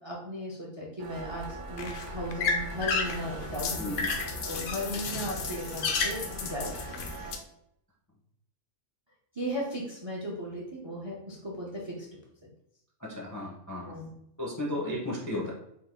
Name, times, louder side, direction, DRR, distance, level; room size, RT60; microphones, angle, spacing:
voice 1, 0.0-4.0 4.4-6.9 9.3-12.1 12.4-12.5 13.8-14.1, equal, 25° right, -3 dB, 0.6 m, -36 dB
sound 1, 1.0-7.3, right 4 dB, 65° right, 1.0 m, -43 dB
sound 2, 1.2-7.4, left 4 dB, 70° left, 0.9 m, -33 dB
voice 2, 3.8-4.1 13.0-13.9 14.4-15.5, left 1 dB, 20° left, -4 dB, 0.6 m, -34 dB
4.1 x 2.6 x 3.6 m, 0.77 s
omnidirectional pair, 1.4 m